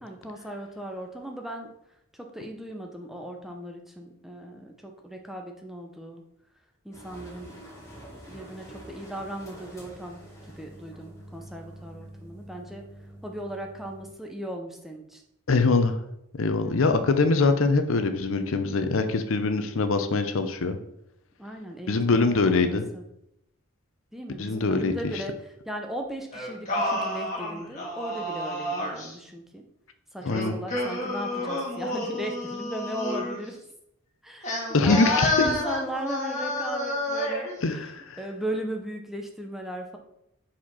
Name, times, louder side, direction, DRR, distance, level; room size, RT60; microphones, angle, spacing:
voice 1, 0.0-1.7 2.1-6.2 6.8-7.5 7.8-10.2 10.5-12.9 13.2-15.2 16.5-17.1 21.4-23.0 24.1-29.6 30.1-33.6 34.2-37.9 38.2-40.0, right 1 dB, ahead, 2 dB, 0.7 m, -37 dB
sound 1, 6.9-14.1, right 1 dB, 15° left, 1.8 m, -46 dB
voice 2, 15.5-16.0 16.4-20.8 21.9-22.8 24.4-25.1 30.2-30.6 34.7-35.3 37.6-38.2, left 3 dB, 65° left, 9 dB, 0.6 m, -23 dB
Singing, 26.3-29.1 30.2-33.4 34.4-37.5, left 1 dB, 35° left, 1.7 m, -30 dB
5.1 x 4.3 x 5.5 m, 0.80 s
head